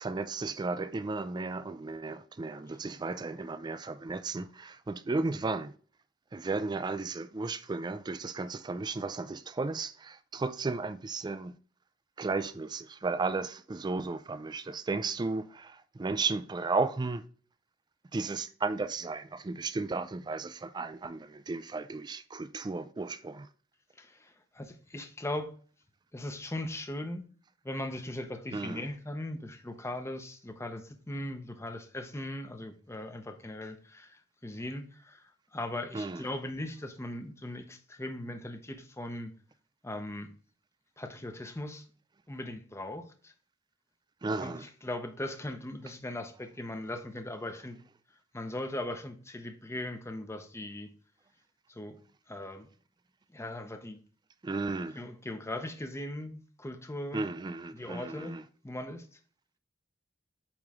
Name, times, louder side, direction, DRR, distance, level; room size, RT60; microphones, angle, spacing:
voice 1, 0.0-5.7 6.3-11.5 12.2-17.2 18.1-23.5 28.5-28.8 35.9-36.2 44.2-44.7 54.4-55.0 57.1-58.4, right 3 dB, 20° right, 0.4 m, -34 dB
voice 2, 24.0-25.5 26.1-27.2 27.6-39.3 39.8-40.3 41.0-41.8 42.3-43.3 44.4-47.8 48.3-50.9 51.7-52.0 52.3-52.7 53.3-54.0 55.0-57.3 57.7-58.4 58.6-59.1, left 1 dB, 15° left, 0.7 m, -39 dB
8.7 x 3.1 x 3.6 m
head